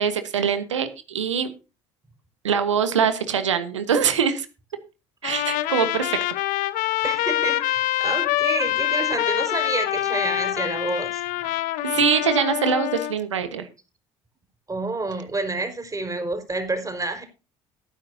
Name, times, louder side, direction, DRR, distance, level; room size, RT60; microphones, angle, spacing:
voice 1, 0.0-1.5 2.4-4.5 5.2-6.2 11.9-13.7, right 7 dB, 85° right, 11 dB, 1.3 m, -23 dB
Trumpet, 5.2-13.1, left 14 dB, 65° left, 0.9 m, -25 dB
voice 2, 7.0-11.2 11.9-12.0 14.7-17.2, right 2 dB, 20° right, 6 dB, 4.7 m, -29 dB
18.0 x 9.7 x 2.7 m, 0.30 s
hypercardioid pair, 55°, 15 cm